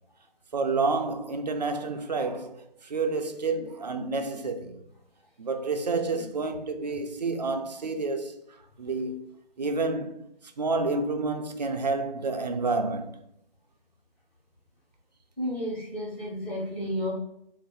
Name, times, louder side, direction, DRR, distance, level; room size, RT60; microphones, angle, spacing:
voice 1, 0.5-4.8 5.4-8.4 8.8-9.3 9.6-10.2 10.6-13.1, right 3 dB, 45° right, 0.4 m, -29 dB
voice 2, 15.4-17.1, equal, 5° left, 1.0 m, -32 dB
3.4 x 2.5 x 3.9 m
figure-of-eight pair, 160°, 30 cm